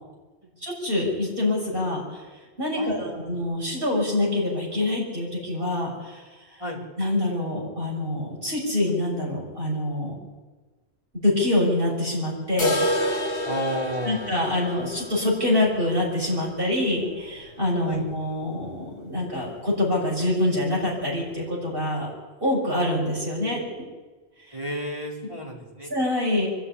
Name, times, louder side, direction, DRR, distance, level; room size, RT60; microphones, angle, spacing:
voice 1, 0.6-2.2 2.6-6.6 7.0-10.2 11.2-13.0 14.0-22.1 22.4-23.8 24.5-24.6 25.9-26.5, left 1 dB, 55° right, -3 dB, 6.9 m, -25 dB
voice 2, 2.8-3.2 6.6-6.8 13.4-14.2 17.8-18.0 24.5-25.9, equal, 25° right, -3 dB, 4.3 m, -31 dB
sound 1, 12.6-18.4 18.7-18.8 19.2-19.3 19.8-19.9 20.7-20.8, left 1 dB, 55° left, 1.7 m, -30 dB
24.5 x 11.5 x 9.9 m, 1.3 s
omnidirectional pair, 1.2 m